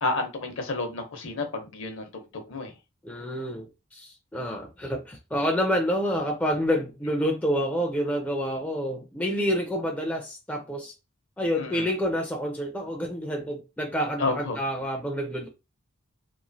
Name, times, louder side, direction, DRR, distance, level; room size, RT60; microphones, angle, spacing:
voice 1, 0.0-2.7 11.5-11.9 14.2-14.6, left 3 dB, 60° left, 0.7 m, -30 dB
voice 2, 3.0-10.9 11.4-15.5, equal, 5° left, 0.4 m, -28 dB
3.0 x 2.3 x 2.6 m
head